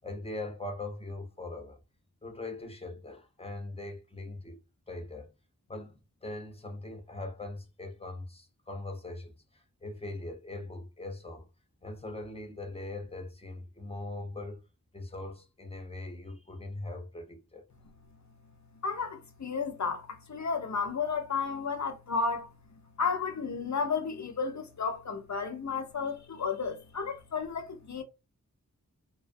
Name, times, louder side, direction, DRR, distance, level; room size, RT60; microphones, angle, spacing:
voice 1, 0.0-1.8 2.2-4.6 4.9-5.3 5.7-11.5 11.8-14.6 14.9-17.6, left 2 dB, 15° left, 0.7 m, -41 dB
voice 2, 18.8-22.5 23.0-28.0, left 5 dB, 55° left, 0.6 m, -32 dB
2.4 x 2.3 x 2.5 m
wide cardioid pair, 60°, 34 cm